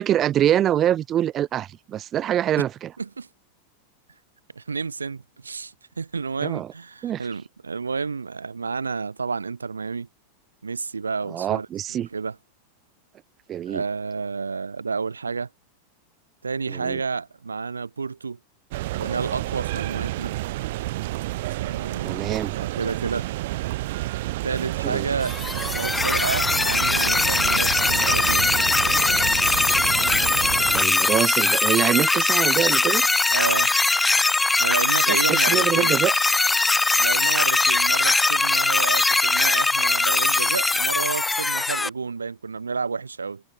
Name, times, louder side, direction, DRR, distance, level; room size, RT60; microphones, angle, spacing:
voice 1, 0.0-2.9 6.4-6.7 7.0-7.3 11.3-12.1 13.5-13.8 16.7-17.0 22.0-22.5 24.8-25.1 30.7-33.1 35.1-36.1, right 11 dB, 30° right, 0.9 m, -24 dB
voice 2, 3.0-3.3 4.5-10.1 10.6-12.3 13.7-15.5 16.4-18.4 18.9-20.3 21.6-23.3 24.4-28.5 30.6-30.7 33.3-33.7 34.6-36.0 37.0-43.4, right 5 dB, 75° right, 4.5 m, -30 dB
sound 1, 18.7-30.8, right 18 dB, 50° right, 4.5 m, -30 dB
sound 2, 25.2-41.9, left 3 dB, 10° left, 1.9 m, -21 dB
figure-of-eight pair, 90°, 0 cm